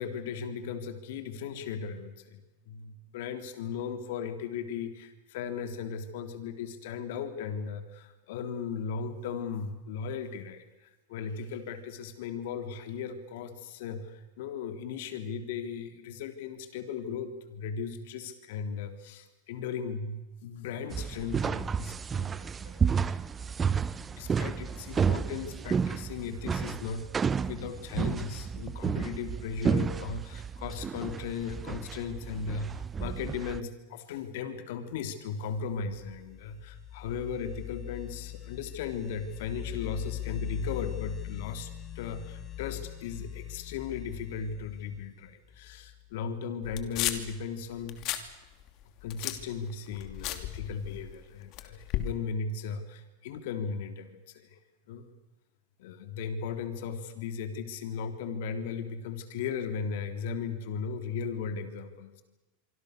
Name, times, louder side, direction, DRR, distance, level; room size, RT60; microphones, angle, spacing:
voice 1, 0.0-23.8 24.1-41.7 42.0-48.0 49.0-54.6 54.9-55.1 55.8-62.1, left 6 dB, 70° left, 8 dB, 3.5 m, -37 dB
sound 1, 20.9-33.6, right 6 dB, 20° right, 0.7 m, -31 dB
sound 2, 35.6-46.1, left 12 dB, 30° left, 3.7 m, -41 dB
sound 3, 46.6-47.4 47.8-48.3 48.6-51.1 51.5-52.1, left 14 dB, 50° left, 2.8 m, -34 dB
26.0 x 25.0 x 6.8 m, 1.1 s
supercardioid pair, 125°, 0 cm